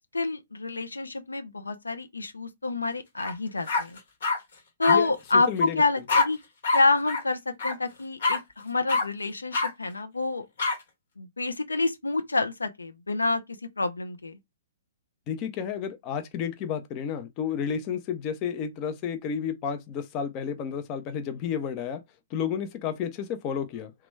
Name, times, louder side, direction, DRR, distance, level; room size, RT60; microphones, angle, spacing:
voice 1, 0.1-4.0 4.8-6.4 6.7-10.5 11.2-13.4 13.8-14.3, left 3 dB, 80° left, 0.4 m, -27 dB
sound 1, 3.2-3.3 3.7-4.4 4.8-5.0 6.1-6.3 6.6-6.8 7.1-7.2 7.6-7.7 8.2-8.4 8.9-9.0 9.5-9.7 10.6-10.7, left 3 dB, 60° left, 1.2 m, -24 dB
voice 2, 5.5-5.8 15.3-22.0 22.3-23.9, left 7 dB, 30° left, 0.6 m, -31 dB
2.9 x 2.2 x 3.2 m
figure-of-eight pair, 120°, 0 cm